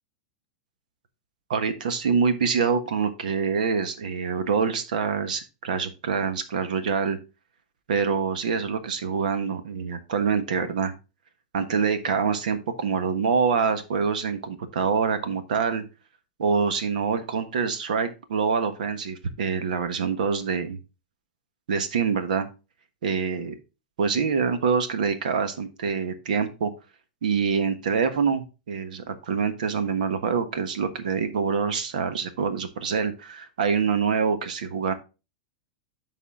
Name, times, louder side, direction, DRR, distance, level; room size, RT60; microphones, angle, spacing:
voice 1, 1.5-7.2 7.9-10.9 11.5-15.8 16.4-20.8 21.7-22.5 23.0-23.5 24.0-26.7 27.2-34.9, right 5 dB, 90° right, 10 dB, 1.3 m, -25 dB
11.5 x 4.1 x 3.7 m, 0.30 s
supercardioid pair, 155°, 4 cm